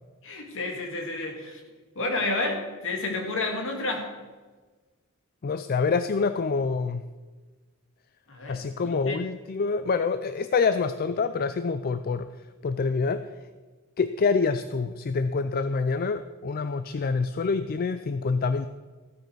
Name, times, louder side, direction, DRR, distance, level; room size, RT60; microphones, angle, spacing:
voice 1, 0.2-1.6 2.0-4.1 8.3-9.2, left 2 dB, 60° left, 2 dB, 2.3 m, -30 dB
voice 2, 5.4-7.0 8.5-12.3 12.6-13.3 14.0-18.7, left 4 dB, 45° left, 11 dB, 0.4 m, -26 dB
14.5 x 9.4 x 4.6 m, 1.3 s
head